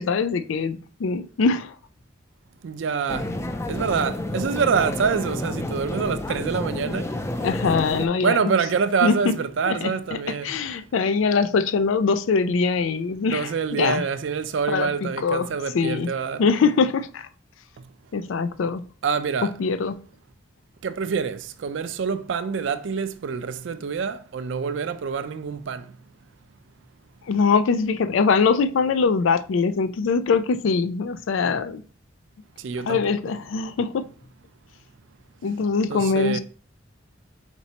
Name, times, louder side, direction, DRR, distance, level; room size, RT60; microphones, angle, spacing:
voice 1, 0.0-1.7 7.4-8.4 9.0-9.3 9.7-14.0 14.7-16.1 16.4-17.3 18.1-18.8 19.6-20.0 27.3-31.8 32.9-34.1 35.4-36.4, left 5 dB, 90° left, 0.4 m, -23 dB
voice 2, 2.6-3.3 3.7-7.1 8.2-10.5 13.3-16.4 19.0-19.5 20.8-25.8 32.6-33.0 33.3-33.4 35.9-36.4, right 6 dB, 75° right, 0.4 m, -26 dB
sound 1, 3.1-8.1, left 1 dB, 15° left, 0.3 m, -30 dB
4.5 x 4.0 x 2.8 m
head